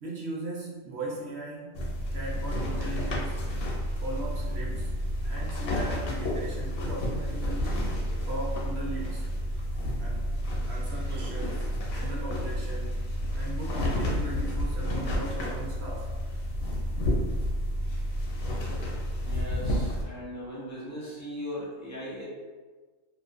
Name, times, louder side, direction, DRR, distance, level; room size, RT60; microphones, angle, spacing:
voice 1, 0.0-3.4 4.0-5.0 5.2-8.0 8.3-9.3 10.0-10.3 10.7-13.1 13.3-16.1, right 2 dB, 65° right, -4 dB, 0.7 m, -38 dB
sound 1, 1.7-20.0, equal, 65° left, 0.7 m, -30 dB
voice 2, 19.2-22.2, equal, 25° left, -8 dB, 0.4 m, -38 dB
2.4 x 2.3 x 2.4 m, 1.3 s
omnidirectional pair, 1.4 m